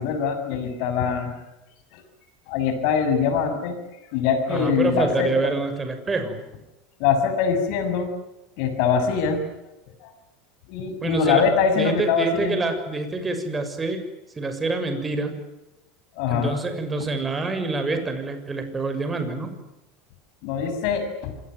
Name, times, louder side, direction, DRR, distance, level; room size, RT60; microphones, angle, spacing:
voice 1, 0.0-1.3 1.9-2.0 2.5-3.8 4.1-5.5 7.0-8.1 8.6-9.4 10.0-10.1 10.7-12.6 16.1-16.5 20.4-21.3, left 6 dB, 60° left, 8 dB, 6.7 m, -23 dB
voice 2, 4.5-6.4 11.0-11.5 11.8-14.0 14.3-15.4 16.3-19.5, right 3 dB, 20° right, 8 dB, 6.6 m, -26 dB
26.5 x 20.0 x 9.6 m, 0.95 s
hypercardioid pair, 85°, 0 cm